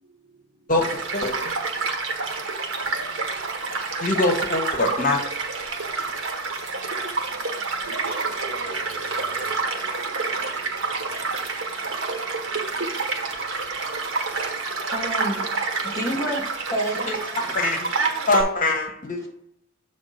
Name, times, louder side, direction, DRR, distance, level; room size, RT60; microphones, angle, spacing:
voice 1, 0.0-0.7 1.7-4.1 5.7-6.1 6.6-16.0 16.7-16.8 17.3-17.4 17.9-18.0 19.2-19.3, right 2 dB, 55° right, 2.1 m, -47 dB
voice 2, 0.7-1.5 4.0-5.2 17.1-17.2 17.5-17.9 18.3-19.2, left 2 dB, 45° left, 1.0 m, -23 dB
Child speech kid speaking / Stream / Car passing by, 0.8-18.4, right 4 dB, 70° right, 1.2 m, -28 dB
voice 3, 14.9-15.4 15.8-17.5, right 1 dB, 15° left, 2.0 m, -29 dB
7.0 x 3.4 x 5.6 m
head